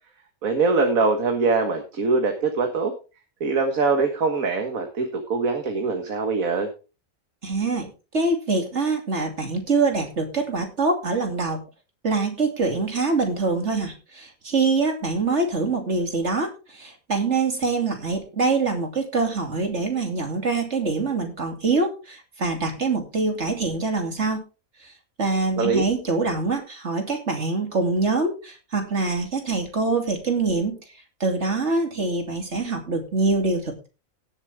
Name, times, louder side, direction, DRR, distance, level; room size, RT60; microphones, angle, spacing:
voice 1, 0.4-2.9 3.4-6.7 25.6-25.8, right 4 dB, 75° right, 5 dB, 2.0 m, -23 dB
voice 2, 7.4-7.9 8.1-11.6 12.0-24.4 24.8-24.9 25.2-30.8 31.2-33.9, right 3 dB, 55° right, 3 dB, 3.0 m, -24 dB
18.0 x 7.4 x 3.6 m, 0.31 s
omnidirectional pair, 1.5 m